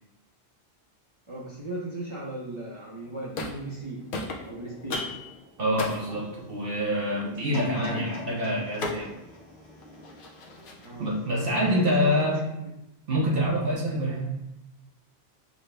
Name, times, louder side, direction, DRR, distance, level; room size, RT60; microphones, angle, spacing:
voice 1, 1.3-4.1 4.4-5.2 6.1-6.2 10.8-12.4 13.9-14.1, right 1 dB, 35° right, -5 dB, 0.7 m, -37 dB
sound 1, 3.0-3.8 4.1-11.1, left 2 dB, 60° left, 0.8 m, -39 dB
voice 2, 5.6-9.1 11.0-12.4 13.1-14.3, equal, 65° right, -3 dB, 0.9 m, -26 dB
sound 2, 7.5-10.6 11.1-11.2, left 3 dB, 75° left, 1.3 m, -40 dB
6.4 x 2.2 x 3.3 m, 0.91 s
omnidirectional pair, 1.1 m